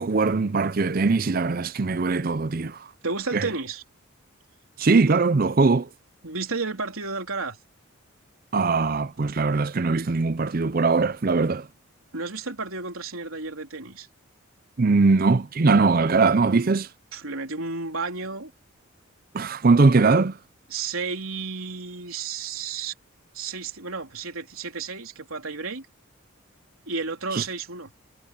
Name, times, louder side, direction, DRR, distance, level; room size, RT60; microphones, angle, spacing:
voice 1, 0.0-2.8 3.3-3.5 4.8-5.9 8.5-11.7 14.8-16.9 19.3-20.4 27.3-27.4, right 3 dB, 40° right, 0.5 m, -21 dB
voice 2, 3.0-3.8 6.2-7.6 12.1-14.1 17.1-18.5 20.7-22.9 23.3-25.9 26.9-27.9, right 4 dB, 75° right, 3.5 m, -32 dB
head